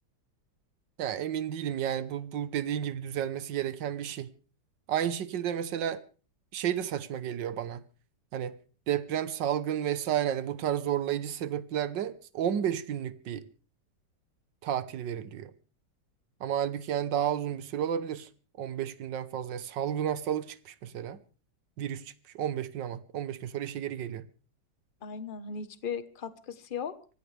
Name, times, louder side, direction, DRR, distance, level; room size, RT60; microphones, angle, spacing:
voice 1, 1.0-4.3 4.9-6.0 6.5-7.8 8.3-8.6 8.9-13.5 14.6-15.5 16.4-18.3 18.6-21.2 21.8-24.3, right 10 dB, 85° right, 1.7 m, -32 dB
voice 2, 25.0-27.1, left 6 dB, 35° left, 1.2 m, -37 dB
24.5 x 16.5 x 3.4 m
omnidirectional pair, 1.9 m